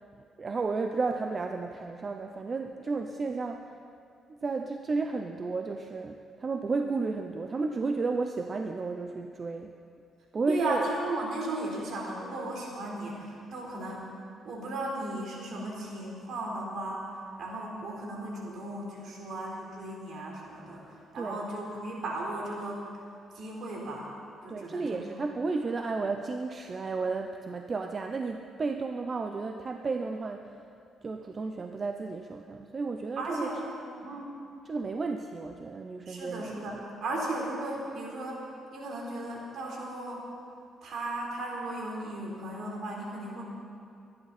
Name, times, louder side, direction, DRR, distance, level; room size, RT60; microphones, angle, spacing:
voice 1, 0.4-3.8 4.4-9.7 10.3-10.9 21.2-21.4 24.5-30.5 31.0-33.5 34.7-36.8, right 4 dB, 35° right, 5 dB, 0.7 m, -33 dB
voice 2, 10.5-14.0 14.4-22.8 23.3-24.1 24.4-25.1 33.2-34.3 36.1-38.4 38.7-40.2 40.8-43.4, right 2 dB, 65° right, -2 dB, 4.0 m, -36 dB
23.0 x 11.0 x 4.3 m, 2.4 s
cardioid pair, 90°, 0 cm